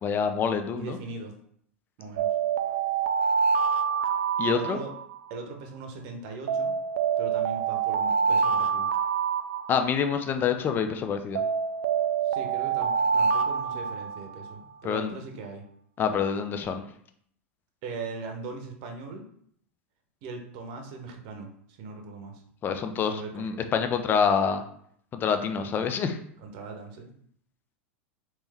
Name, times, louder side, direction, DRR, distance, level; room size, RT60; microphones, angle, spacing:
voice 1, 0.0-1.0 4.4-4.8 9.7-11.4 14.8-15.1 16.0-16.8 22.6-24.6 25.1-26.2, left 6 dB, 30° left, 7 dB, 0.5 m, -26 dB
voice 2, 0.7-1.4 2.0-2.3 4.4-4.9 5.3-6.7 7.2-8.9 12.2-15.7 17.8-19.3 20.2-22.4 22.9-23.7 25.7-26.0 26.4-27.1, right 3 dB, 55° right, 4 dB, 0.8 m, -39 dB
sound 1, 2.2-5.4 6.5-10.2 11.4-14.6, right 6 dB, 75° right, 0.4 m, -26 dB
3.4 x 3.0 x 3.4 m, 0.65 s
hypercardioid pair, 100°, 7 cm